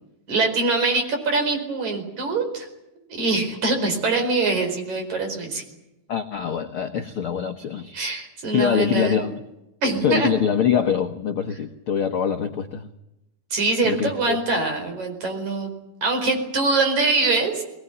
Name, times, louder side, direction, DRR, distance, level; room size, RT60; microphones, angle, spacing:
voice 1, 0.3-2.7 3.1-5.6 7.9-9.3 9.8-10.3 13.5-15.7 16.0-17.6, right 3 dB, 50° right, 5 dB, 6.0 m, -23 dB
voice 2, 6.1-8.0 8.5-9.4 10.0-12.9 13.8-14.4, left 8 dB, 75° left, 6 dB, 1.2 m, -24 dB
22.5 x 19.5 x 10.0 m, 0.91 s
omnidirectional pair, 4.2 m